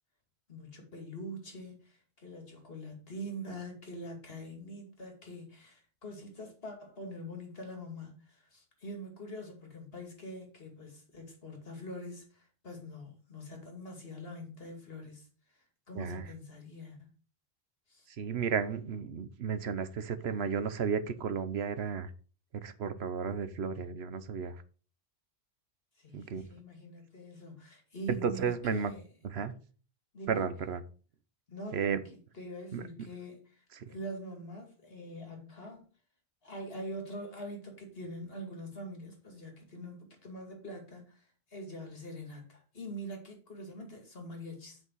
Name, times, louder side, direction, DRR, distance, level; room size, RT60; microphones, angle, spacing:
voice 1, 0.5-15.3 15.5-17.1 17.9-18.1 26.0-29.0 30.1-30.5 31.5-35.9 36.4-44.8, equal, 70° left, 2.6 m, -44 dB
voice 2, 15.9-16.3 18.2-22.1 22.6-24.6 26.1-26.5 28.1-28.9 29.2-29.5 30.3-30.8 31.7-32.0 32.7-32.8 33.8-33.9, right 6 dB, 85° right, 1.1 m, -33 dB
8.3 x 5.8 x 4.7 m
omnidirectional pair, 1.1 m